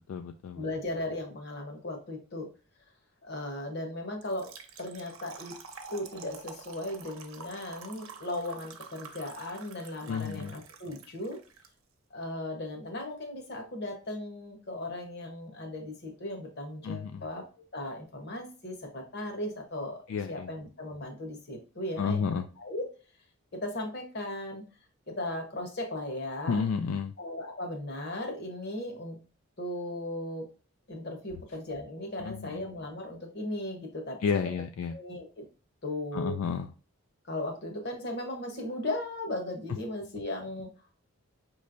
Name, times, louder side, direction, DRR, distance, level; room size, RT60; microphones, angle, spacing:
voice 1, 0.0-0.7 10.1-10.6 16.8-17.2 20.1-20.5 22.0-22.5 26.5-27.1 32.2-32.7 34.2-34.9 36.1-36.7, left 6 dB, 75° left, 7 dB, 0.3 m, -31 dB
voice 2, 0.5-2.5 3.2-4.5 4.8-5.5 5.9-11.4 12.1-17.4 17.7-20.0 20.3-22.2 22.6-22.9 23.6-24.6 25.1-26.6 27.2-29.2 29.6-30.5 30.9-34.5 34.9-35.4 35.8-36.4 37.3-40.7, left 1 dB, 50° left, 4 dB, 1.0 m, -37 dB
Trickle dribble / Fill (with liquid), 4.2-11.7, right 5 dB, 75° right, 0.7 m, -48 dB
5.3 x 3.1 x 2.5 m, 0.36 s
head